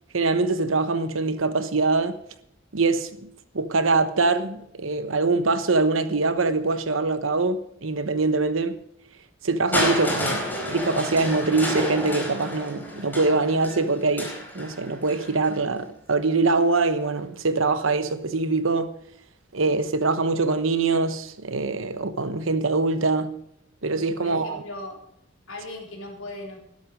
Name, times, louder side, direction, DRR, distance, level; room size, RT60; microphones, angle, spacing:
voice 1, 0.1-2.2 2.7-3.3 3.5-8.8 9.4-18.9 19.5-23.3 23.8-24.6, right 3 dB, 75° right, 1.1 m, -23 dB
Crushing, 9.7-15.6 16.6-16.7, left 1 dB, 10° left, 4.5 m, -30 dB
voice 2, 24.2-25.0 25.5-26.6, left 1 dB, 75° left, 4.0 m, -37 dB
13.0 x 11.5 x 5.3 m
head